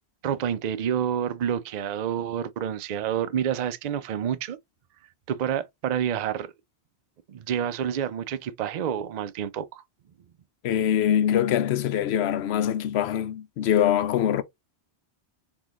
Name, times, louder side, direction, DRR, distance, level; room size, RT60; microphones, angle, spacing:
voice 1, 0.2-4.6 5.3-6.5 7.3-9.8, right 9 dB, 55° right, 0.5 m, -28 dB
voice 2, 10.6-14.4, left 10 dB, 75° left, 0.8 m, -23 dB
4.1 x 3.8 x 2.9 m
omnidirectional pair, 1.1 m